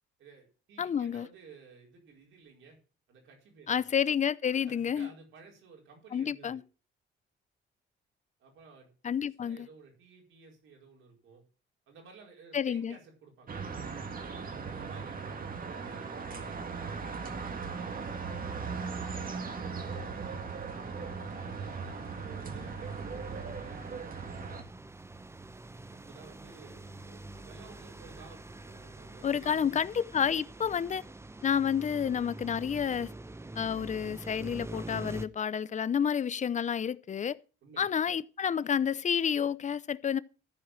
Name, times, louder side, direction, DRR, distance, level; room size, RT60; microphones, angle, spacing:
voice 1, 0.2-2.8 3.1-3.9 4.5-6.6 8.4-8.9 9.4-11.4 11.9-13.6 14.7-18.6 19.3-20.6 21.2-24.0 25.9-29.8 37.6-38.0, right 5 dB, 80° right, 4.7 m, -55 dB
voice 2, 0.8-1.3 3.7-5.1 6.1-6.6 9.0-9.7 12.5-13.0 29.2-31.0 31.4-33.1 33.6-37.4 37.8-40.2, left 8 dB, 40° left, 0.6 m, -30 dB
sound 1, 13.5-24.6, right 5 dB, 45° right, 1.8 m, -38 dB
sound 2, 17.6-35.3, right 2 dB, 15° right, 0.7 m, -46 dB
14.0 x 4.7 x 7.5 m
cardioid pair, 90°, 20 cm